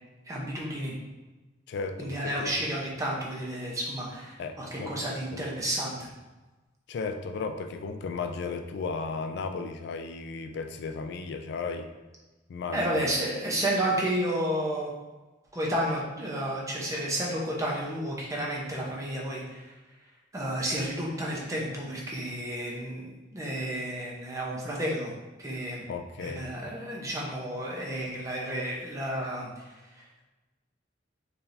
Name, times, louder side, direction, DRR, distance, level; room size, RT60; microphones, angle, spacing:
voice 1, 0.3-0.9 2.0-6.1 12.7-14.9 15.5-19.7 20.3-25.1 25.4-25.8 26.2-29.5, right 1 dB, 15° right, -3 dB, 0.8 m, -31 dB
voice 2, 1.7-2.5 4.4-4.9 5.3-5.4 6.9-11.9 12.5-13.1 25.9-26.5, left 4 dB, 65° left, 7 dB, 0.3 m, -35 dB
4.4 x 3.3 x 2.6 m, 1.2 s
head